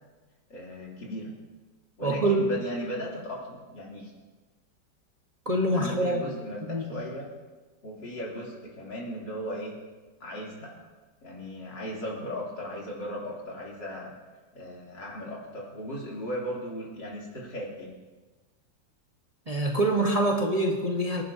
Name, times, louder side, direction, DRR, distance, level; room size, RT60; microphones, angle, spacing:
voice 1, 0.5-1.3 2.0-4.1 5.7-7.3 7.8-9.8 10.2-10.8 11.2-14.1 14.5-17.9, equal, 75° left, -4 dB, 3.9 m, -37 dB
voice 2, 2.0-2.5 5.4-6.3 6.7-7.0 19.5-21.2, right 1 dB, 25° right, 0 dB, 1.1 m, -25 dB
26.0 x 11.0 x 2.8 m, 1.3 s
omnidirectional pair, 2.0 m